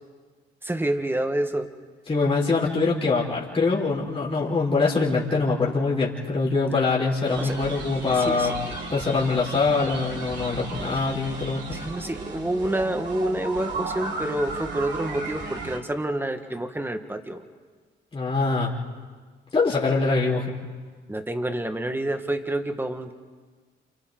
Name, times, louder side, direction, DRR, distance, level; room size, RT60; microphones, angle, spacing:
voice 1, 0.6-1.7 7.4-7.6 8.1-8.5 11.7-17.4 21.1-23.1, right 1 dB, 10° right, 7 dB, 1.8 m, -28 dB
voice 2, 2.1-8.5 8.9-11.8 18.1-18.7 19.5-20.6, left 4 dB, 30° left, -4 dB, 4.9 m, -23 dB
sound 1, 7.2-15.8, right 3 dB, 60° right, 4.4 m, -35 dB
28.5 x 28.5 x 4.0 m, 1.5 s
cardioid pair, 90°, 20 cm